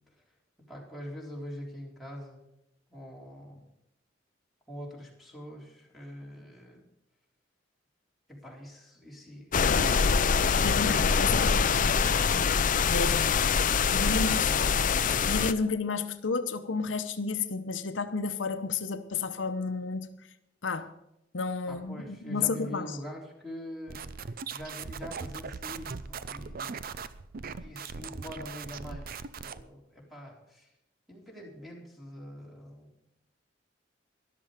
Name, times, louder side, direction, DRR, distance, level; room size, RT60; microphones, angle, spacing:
voice 1, 0.7-2.4 2.9-3.6 4.7-6.8 8.3-11.6 13.9-14.9 21.7-26.8 27.6-29.1 29.4-30.7 31.1-32.9, equal, ahead, -2 dB, 3.6 m, -44 dB
sound 1, 9.5-15.5, left 6 dB, 45° left, 0.5 m, -24 dB
voice 2, 10.6-11.9 12.9-13.3 13.9-14.5 15.2-20.1 20.6-20.9 21.3-22.9, left 4 dB, 85° left, 9 dB, 0.8 m, -31 dB
sound 2, 23.9-29.6, right 5 dB, 50° right, 0.5 m, -40 dB
13.0 x 12.0 x 5.0 m, 0.83 s
head